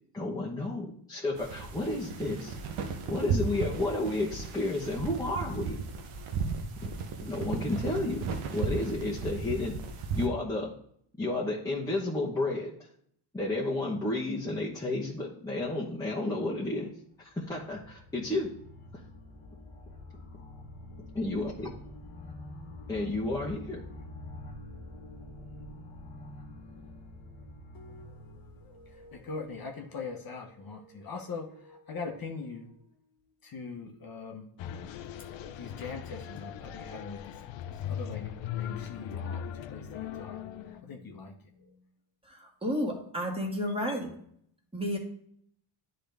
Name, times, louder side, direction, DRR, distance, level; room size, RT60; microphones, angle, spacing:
voice 1, 0.1-2.6 3.1-5.8 6.8-6.9 7.2-8.2 8.5-9.8 10.1-10.7 11.2-12.7 13.3-16.9 17.2-18.5 21.2-21.7 22.9-23.8, left 2 dB, 5° left, -6 dB, 1.1 m, -31 dB
sound 1, 1.4-10.3, right 5 dB, 85° right, 1.1 m, -35 dB
sound 2, 17.1-30.0, left 1 dB, 90° left, 1.3 m, -47 dB
voice 2, 27.7-28.1 28.7-32.7 33.4-34.5 35.6-37.2 37.8-39.4 39.7-39.8 40.2-40.4 40.6-41.3, left 4 dB, 45° left, 2 dB, 1.0 m, -41 dB
sound 3, 34.6-40.8, left 9 dB, 65° left, 0.6 m, -39 dB
voice 3, 42.3-44.1 44.7-45.0, equal, 10° right, -1 dB, 1.6 m, -32 dB
10.0 x 3.8 x 3.4 m, 0.67 s
cardioid pair, 110°, 49 cm